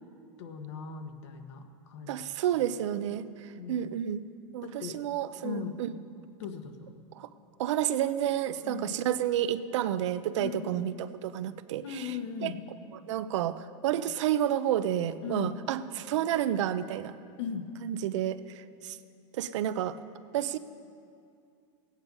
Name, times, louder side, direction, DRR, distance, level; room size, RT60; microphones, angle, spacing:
voice 1, 0.4-2.3 3.6-3.8 4.6-5.0 5.4-5.7 6.4-6.9 8.6-8.9 10.4-10.7 11.8-12.6 15.2-15.5 17.4-17.6, left 7 dB, 65° left, 6 dB, 1.3 m, -38 dB
voice 2, 2.1-4.3 4.5-5.9 7.2-7.3 7.6-12.2 12.4-12.5 13.1-17.1 17.8-19.0 19.3-20.0 20.3-20.6, right 11 dB, 75° right, 13 dB, 0.6 m, -30 dB
17.0 x 9.0 x 5.4 m, 2.4 s
supercardioid pair, 170°, 16 cm